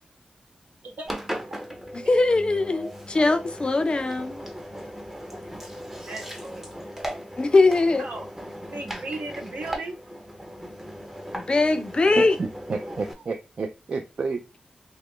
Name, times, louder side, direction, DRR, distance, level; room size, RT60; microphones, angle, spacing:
voice 1, 0.8-1.2 6.0-6.8 8.0-8.3 8.7-10.0, right 2 dB, 80° right, 0.8 m, -36 dB
Engine, 1.0-13.1, equal, 10° right, 0.6 m, -38 dB
voice 2, 1.9-4.4 7.4-8.0 11.3-12.4, left 3 dB, 35° left, 0.4 m, -21 dB
voice 3, 12.0-14.4, right 4 dB, 55° right, 0.3 m, -30 dB
3.0 x 2.3 x 3.5 m
wide cardioid pair, 105°, 3 cm